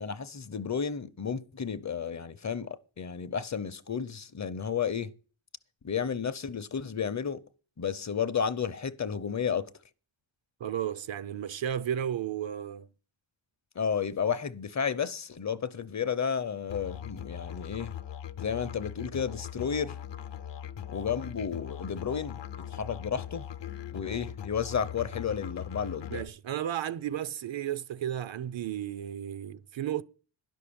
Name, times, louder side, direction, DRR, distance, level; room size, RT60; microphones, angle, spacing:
voice 1, 0.0-5.1 5.8-7.4 7.8-9.7 13.8-17.9 18.4-20.0 20.9-23.5 23.9-26.2, left 7 dB, 40° left, 0.7 m, -32 dB
voice 2, 10.6-12.9 26.1-30.0, right 10 dB, 75° right, 0.7 m, -33 dB
Musical instrument, 16.7-26.3, left 10 dB, 65° left, 0.8 m, -40 dB
11.5 x 6.2 x 8.6 m
wide cardioid pair, 180°, 46 cm